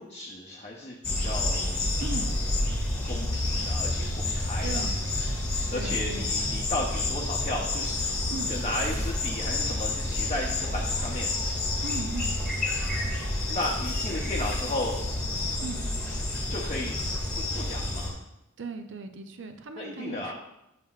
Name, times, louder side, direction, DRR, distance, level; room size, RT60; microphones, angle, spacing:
voice 1, 0.0-1.9 3.0-4.9 5.7-8.0 8.5-11.3 13.5-15.0 16.5-17.0 17.3-18.2 19.8-20.3, left 1 dB, 35° left, -2 dB, 0.7 m, -34 dB
sound 1, 1.0-18.1, left 2 dB, 10° left, 1.7 m, -29 dB
voice 2, 2.0-2.4 4.6-5.0 5.7-6.4 8.3-8.6 11.8-12.4 15.6-15.9 18.6-20.3, right 3 dB, 65° right, 7 dB, 0.6 m, -37 dB
7.4 x 5.9 x 2.4 m, 0.89 s
head